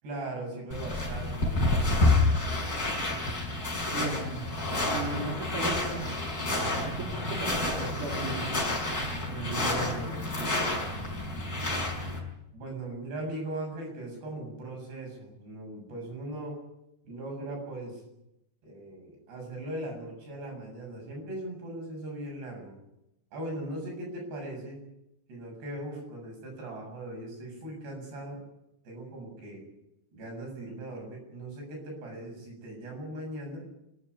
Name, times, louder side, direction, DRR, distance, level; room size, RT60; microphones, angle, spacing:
voice 1, 0.0-2.0 12.5-16.6 17.0-18.0 18.6-22.8 23.3-24.8 25.3-28.4 28.9-29.6 30.1-33.7, right 1 dB, 70° right, 1 dB, 9.5 m, -39 dB
sound 1, 0.7-12.2, left 2 dB, 20° left, 5.7 m, -29 dB
voice 2, 3.9-4.5 4.9-6.1 6.8-8.5 9.3-10.5, right 2 dB, 50° right, -2 dB, 5.5 m, -36 dB
29.0 x 12.5 x 9.6 m, 0.88 s
omnidirectional pair, 4.9 m